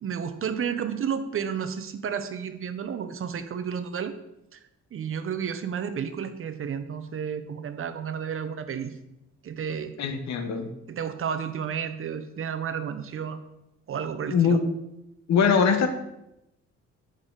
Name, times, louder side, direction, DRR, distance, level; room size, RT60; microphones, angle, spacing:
voice 1, 0.0-4.2 4.5-4.6 4.9-9.0 9.4-9.9 10.9-13.4 13.9-14.6, right 7 dB, 45° right, 10 dB, 0.6 m, -31 dB
voice 2, 10.0-10.7 14.3-14.6 15.3-15.9, left 6 dB, 65° left, 7 dB, 0.9 m, -22 dB
6.3 x 4.8 x 3.7 m, 0.87 s
cardioid pair, 90°, 30 cm